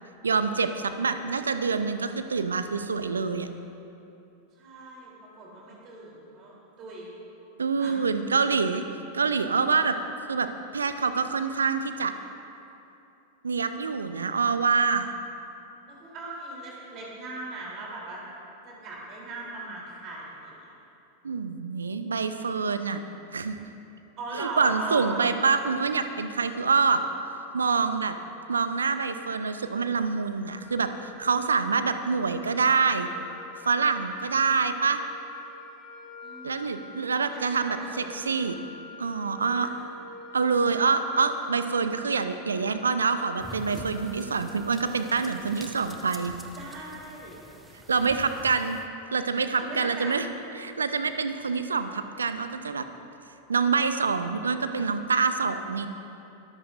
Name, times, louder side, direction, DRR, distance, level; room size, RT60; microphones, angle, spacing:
voice 1, 0.2-3.5 7.6-8.8 9.1-12.1 13.4-15.1 21.2-23.0 23.3-23.6 24.3-27.0 27.5-28.2 28.5-30.9 31.2-33.1 33.6-35.0 36.4-37.8 38.1-38.6 39.0-39.7 40.3-46.3 47.9-48.8 49.1-50.3 50.5-52.9 53.5-55.9, right 5 dB, 70° right, 10 dB, 0.7 m, -26 dB
voice 2, 4.6-7.1 7.8-8.0 15.9-18.2 18.6-20.7 24.2-25.2 36.2-38.3 39.6-39.7 46.5-47.3 48.0-48.6 49.6-50.2, right 2 dB, 35° right, -4 dB, 3.3 m, -39 dB
sound 1, 30.4-44.9, left 2 dB, 20° left, 3.2 m, -47 dB
sound 2, 43.4-48.9, right 1 dB, 10° right, 1.1 m, -46 dB
22.0 x 14.0 x 2.6 m, 2.8 s
figure-of-eight pair, 90°, 0 cm